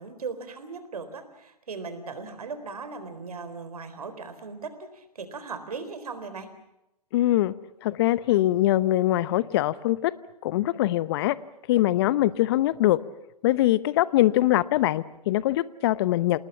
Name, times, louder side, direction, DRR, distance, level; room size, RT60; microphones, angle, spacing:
voice 1, 0.0-6.5, right 4 dB, 70° right, 11 dB, 4.0 m, -38 dB
voice 2, 7.1-7.5 7.8-10.1 10.4-11.4 11.7-13.0 13.4-16.4, left 15 dB, 40° left, 18 dB, 0.9 m, -22 dB
27.5 x 20.0 x 7.2 m, 0.89 s
figure-of-eight pair, 125°, 20 cm